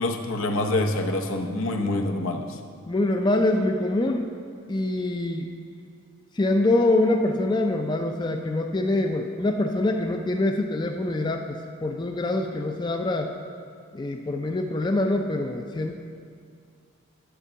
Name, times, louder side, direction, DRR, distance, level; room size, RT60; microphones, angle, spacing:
voice 1, 0.0-2.6, left 2 dB, 80° left, 3 dB, 0.8 m, -26 dB
voice 2, 2.9-4.3 4.7-5.5 6.4-13.3 13.9-15.9, left 2 dB, 20° left, 4 dB, 0.4 m, -24 dB
10.0 x 4.5 x 6.9 m, 2.3 s
head